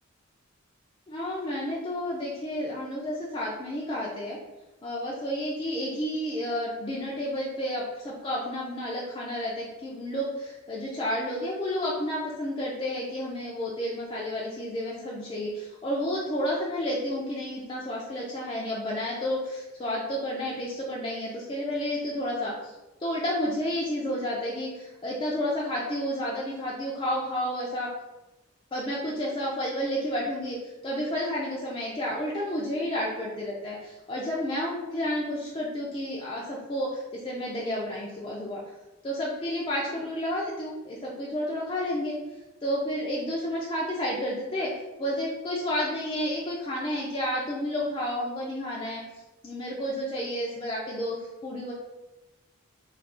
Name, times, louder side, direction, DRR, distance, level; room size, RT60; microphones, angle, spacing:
voice 1, 1.1-4.4 4.8-22.7 23.0-27.9 28.7-38.6 39.0-42.2 42.6-44.7 45.0-49.0 49.4-51.7, equal, 25° left, -5 dB, 0.3 m, -31 dB
2.4 x 2.3 x 3.5 m, 1.1 s
head